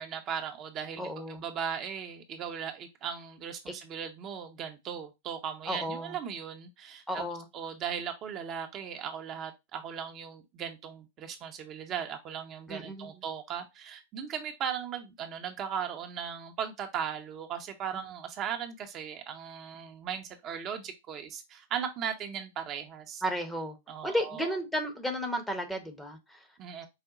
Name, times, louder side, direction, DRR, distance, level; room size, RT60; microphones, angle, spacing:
voice 1, 0.0-7.2 7.5-23.2 23.9-24.6 26.6-26.9, right 8 dB, 35° right, 0.7 m, -37 dB
voice 2, 1.0-1.4 3.7-3.8 5.7-6.2 7.1-7.5 12.7-13.2 23.2-23.8 24.0-26.5, equal, 5° left, 0.8 m, -33 dB
4.9 x 2.1 x 3.8 m
figure-of-eight pair, 105°, 0 cm